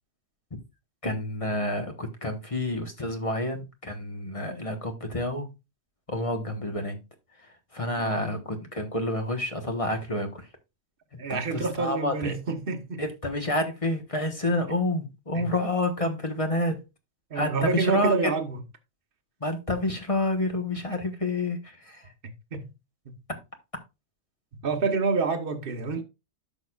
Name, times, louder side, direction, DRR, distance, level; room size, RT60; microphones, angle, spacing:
voice 1, 1.0-5.5 6.1-7.0 7.4-10.5 11.1-12.4 13.0-16.8 17.3-18.3 19.4-22.1, left 1 dB, 25° left, 1.2 m, -29 dB
voice 2, 8.0-8.3 11.2-13.0 15.3-15.5 17.3-18.6 22.5-22.7 23.0-23.2 24.5-26.0, right 4 dB, 45° right, 1.2 m, -28 dB
10.5 x 6.6 x 2.4 m
omnidirectional pair, 1.4 m